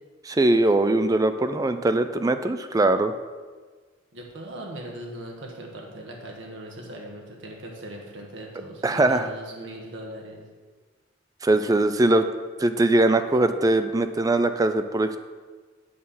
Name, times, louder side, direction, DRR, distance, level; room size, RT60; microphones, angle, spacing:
voice 1, 0.2-3.1 8.8-9.3 11.4-12.3 12.6-15.2, right 2 dB, 20° right, 10 dB, 0.4 m, -21 dB
voice 2, 4.1-10.4, right 1 dB, 75° right, 0 dB, 1.5 m, -39 dB
8.6 x 4.2 x 7.0 m, 1.4 s
head